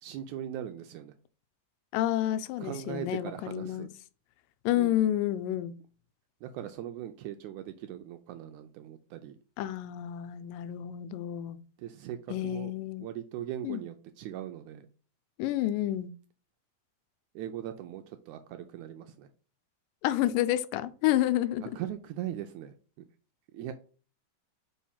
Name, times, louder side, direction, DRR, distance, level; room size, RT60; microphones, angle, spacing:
voice 1, 0.0-1.1 2.6-3.9 4.8-4.9 6.4-9.4 11.8-12.7 13.0-14.9 17.4-19.3 21.6-22.8 23.5-23.7, right 11 dB, 80° right, 1.8 m, -39 dB
voice 2, 1.9-3.9 4.7-5.7 9.6-11.6 12.3-13.1 13.6-13.8 15.4-16.1 20.0-21.7, left 13 dB, 90° left, 2.2 m, -29 dB
5.1 x 4.2 x 5.5 m
omnidirectional pair, 3.8 m